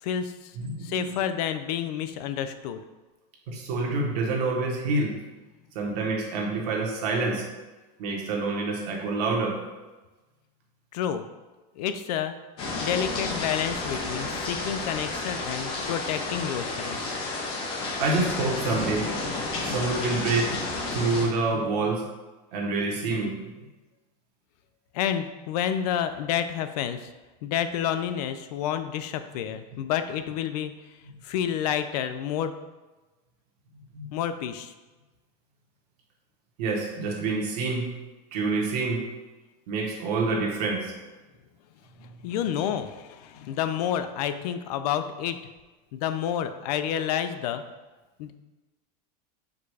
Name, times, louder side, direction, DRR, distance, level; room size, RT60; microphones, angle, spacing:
voice 1, 0.0-0.5 0.8-2.8 10.9-11.2 11.8-12.3 12.8-17.0 24.9-27.1 27.4-30.7 31.2-32.6 34.1-34.7 42.0-45.4 45.9-47.6 48.2-48.3, left 9 dB, 70° left, 10 dB, 0.4 m, -29 dB
voice 2, 0.5-1.2 3.5-5.2 5.7-7.4 8.0-9.6 18.0-19.1 19.6-20.5 20.9-22.0 22.5-23.4 33.9-34.2 36.6-37.9 38.3-39.0 39.7-40.9 43.4-43.5, right 3 dB, 70° right, 0 dB, 1.1 m, -27 dB
sound 1, 12.6-21.3, left 3 dB, 25° left, 0.6 m, -31 dB
4.8 x 2.3 x 4.6 m, 1.2 s
supercardioid pair, 175°, 21 cm